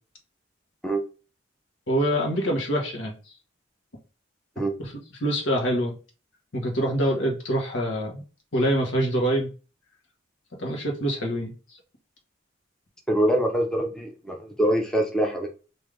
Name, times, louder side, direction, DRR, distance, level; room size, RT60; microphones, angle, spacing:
voice 1, 1.9-3.1 5.2-5.9 6.5-8.2 8.5-9.5 10.6-11.5, right 1 dB, 85° left, -1 dB, 1.1 m, -25 dB
voice 2, 13.1-15.5, right 1 dB, 5° left, 1 dB, 0.5 m, -24 dB
3.3 x 2.6 x 3.7 m, 0.35 s
head